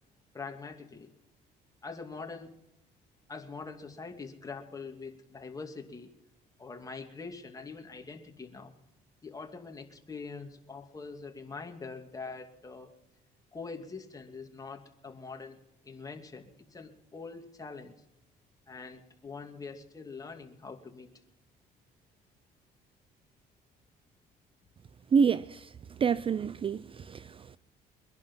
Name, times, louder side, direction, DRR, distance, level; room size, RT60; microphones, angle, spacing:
voice 1, 0.3-1.1 1.8-2.6 3.3-6.1 6.6-8.7 9.2-12.9 13.5-15.6 15.8-17.9 18.7-21.1, left 4 dB, 20° left, 2.5 m, -44 dB
voice 2, 25.1-25.7 26.0-27.6, right 6 dB, 30° right, 0.5 m, -28 dB
23.5 x 11.0 x 5.5 m
cardioid pair, 110°, 17 cm